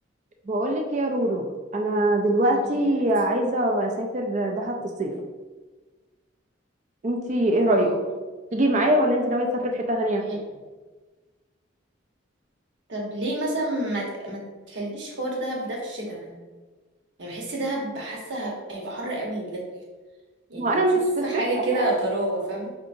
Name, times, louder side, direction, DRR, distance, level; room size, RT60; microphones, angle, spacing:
voice 1, 0.5-1.5 1.7-5.1 7.0-7.9 8.5-10.2 20.6-21.2 21.6-21.9, right 1 dB, 35° right, 2 dB, 0.4 m, -23 dB
voice 2, 2.4-3.1 7.6-8.0 8.8-8.9 10.3-10.4 12.9-14.4 14.7-16.3 17.2-19.7 20.5-20.8 21.2-22.8, right 1 dB, 65° right, -2 dB, 0.9 m, -29 dB
4.6 x 2.8 x 2.5 m, 1.3 s
head